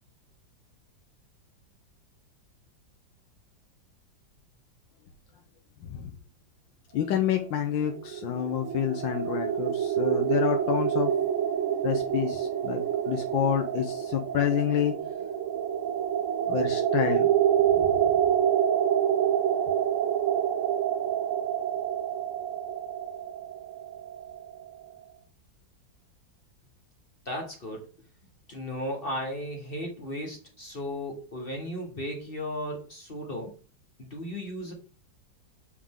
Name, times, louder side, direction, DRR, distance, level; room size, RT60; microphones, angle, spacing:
voice 1, 6.9-11.1 11.8-12.8 13.1-14.9 16.5-17.3, left 10 dB, 90° left, 3 dB, 1.5 m, -28 dB
sound 1, 7.9-24.7, right 9 dB, 75° right, 0.7 m, -27 dB
voice 2, 27.2-27.9 28.5-33.6 34.0-34.7, equal, 35° left, 1 dB, 1.3 m, -35 dB
7.2 x 4.9 x 3.7 m, 0.37 s
omnidirectional pair, 2.0 m